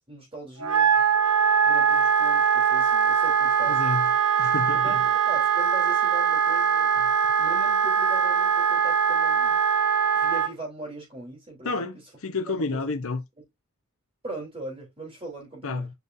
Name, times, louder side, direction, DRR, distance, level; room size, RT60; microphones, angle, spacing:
voice 1, 0.1-0.9 1.7-3.9 4.7-7.0 7.4-9.6 10.1-11.7 12.5-12.8 14.2-15.9, right 2 dB, 25° right, 3.6 m, -40 dB
Wind instrument woodwind instrument, 0.6-10.5, right 7 dB, 90° right, 1.1 m, -22 dB
voice 2, 3.7-4.1 4.4-5.0 11.6-13.2 15.6-15.9, left 3 dB, 65° left, 0.9 m, -30 dB
8.2 x 5.4 x 2.7 m
head